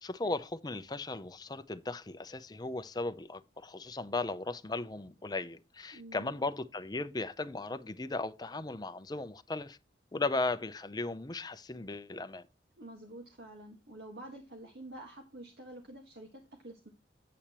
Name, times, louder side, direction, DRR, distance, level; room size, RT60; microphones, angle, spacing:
voice 1, 0.0-9.8 10.1-12.4, left 3 dB, 25° left, 0.6 m, -36 dB
voice 2, 5.9-6.3 12.8-16.9, right 1 dB, 65° right, 1.6 m, -48 dB
8.5 x 8.5 x 3.0 m
head